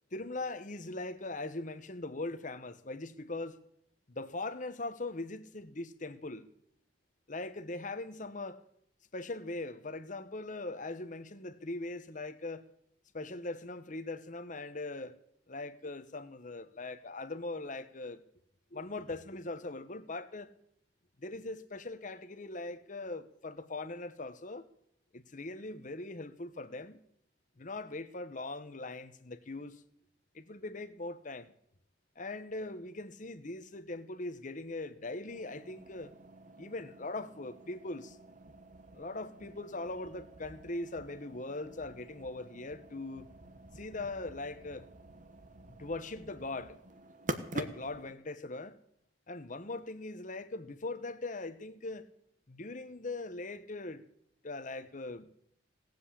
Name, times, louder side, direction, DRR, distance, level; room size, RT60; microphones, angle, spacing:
voice 1, 0.1-3.6 4.1-6.5 7.3-8.6 9.1-12.7 13.1-15.1 15.5-18.2 18.7-20.5 21.2-24.7 25.1-27.0 27.6-29.8 30.3-31.5 32.2-36.1 36.6-38.2 38.9-43.3 43.7-44.9 45.8-46.8 47.5-48.8 49.3-52.1 52.5-54.0 54.4-55.3, left 2 dB, 45° left, 1.1 m, -40 dB
sound 1, 35.3-48.1, right 2 dB, 45° right, 1.1 m, -47 dB
18.0 x 7.9 x 8.5 m
head